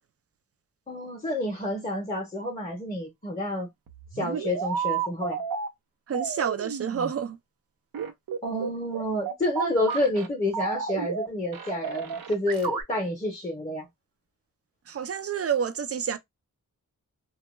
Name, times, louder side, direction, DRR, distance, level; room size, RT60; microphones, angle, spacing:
voice 1, 0.9-3.7 4.2-5.4 8.4-13.9, left 1 dB, 20° left, 0.7 m, -29 dB
sound 1, 3.9-5.7 6.1-7.1 7.9-10.3 10.5-11.3 11.5-12.8, right 7 dB, 85° right, 0.6 m, -31 dB
voice 2, 6.1-7.4 14.9-16.2, right 7 dB, 45° right, 0.4 m, -29 dB
2.2 x 2.2 x 3.0 m
wide cardioid pair, 130°, 34 cm